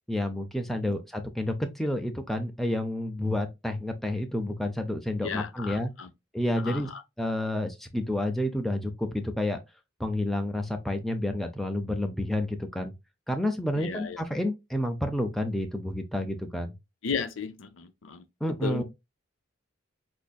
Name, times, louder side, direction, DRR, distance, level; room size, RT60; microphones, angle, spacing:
voice 1, 0.1-5.9 6.3-6.9 7.2-9.6 10.0-12.9 13.3-16.7 18.4-18.8, left 1 dB, ahead, 0.4 m, -30 dB
voice 2, 5.2-6.1 6.6-7.0 13.8-14.2 17.0-18.2 18.6-18.8, left 6 dB, 70° left, 0.6 m, -34 dB
5.1 x 2.6 x 2.2 m
head